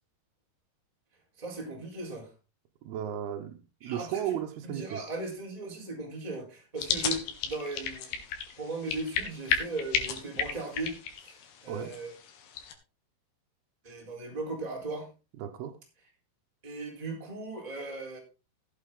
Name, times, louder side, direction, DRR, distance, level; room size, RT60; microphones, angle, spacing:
voice 1, 1.4-2.3 3.8-4.2 4.6-8.2 8.6-11.0 11.2-12.1 13.8-15.1 16.6-18.2, right 3 dB, 10° right, -1 dB, 3.6 m, -37 dB
voice 2, 2.8-5.0 11.7-11.9 15.4-15.7, right 10 dB, 75° right, 3 dB, 2.9 m, -35 dB
sound 1, 6.8-12.7, left 7 dB, 75° left, 3.7 m, -34 dB
15.0 x 8.5 x 3.8 m, 0.30 s
omnidirectional pair, 4.8 m